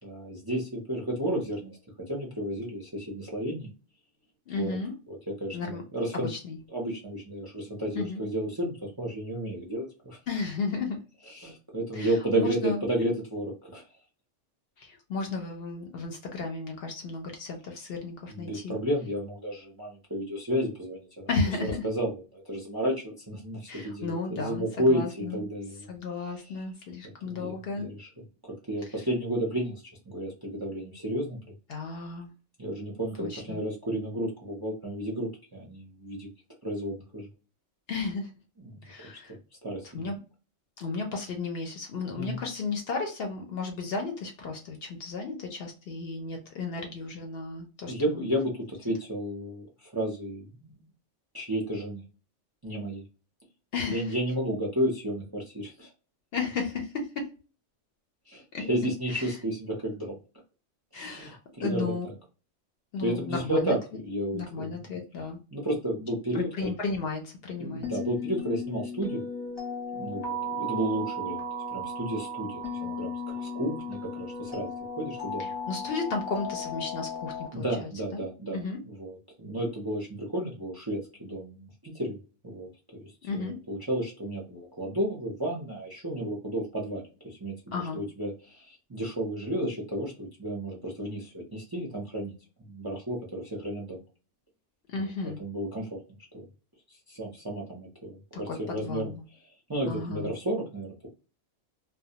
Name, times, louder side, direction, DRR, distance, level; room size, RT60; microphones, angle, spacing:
voice 1, 0.0-1.8 2.1-3.7 4.5-4.7 5.1-6.3 6.7-10.2 11.3-13.8 18.3-21.3 21.8-25.9 27.2-28.1 28.7-31.4 32.6-36.3 36.6-37.3 38.6-38.9 39.3-40.1 42.2-42.4 47.9-50.9 51.3-52.0 52.6-53.0 53.9-55.9 58.3-60.2 60.9-61.9 63.0-64.8 65.5-66.7 67.6-69.2 69.9-71.4 71.7-75.5 77.5-82.2 82.4-94.0 94.9-95.1 95.4-96.0 96.3-96.5 96.9-99.1 99.7-101.1, right 1 dB, 30° right, -2 dB, 0.4 m, -32 dB
voice 2, 4.5-4.9 5.5-5.8 6.1-6.6 8.0-8.2 10.3-11.0 11.9-12.8 14.8-18.8 21.3-21.8 23.7-25.4 25.9-27.9 31.7-32.3 33.2-33.6 37.9-38.3 38.8-39.4 39.9-40.2 40.8-48.2 53.7-54.1 56.3-57.3 58.5-58.7 59.1-59.4 60.9-62.1 62.9-63.8 64.3-65.4 66.3-67.9 75.4-78.2 78.5-78.8 83.2-83.6 87.7-88.0 94.9-95.4 98.5-99.2 99.9-100.3, left 4 dB, 65° left, 3 dB, 0.7 m, -34 dB
sound 1, 67.8-77.5, left 2 dB, 25° left, 0.7 m, -35 dB
2.2 x 2.1 x 2.7 m, 0.34 s
omnidirectional pair, 1.3 m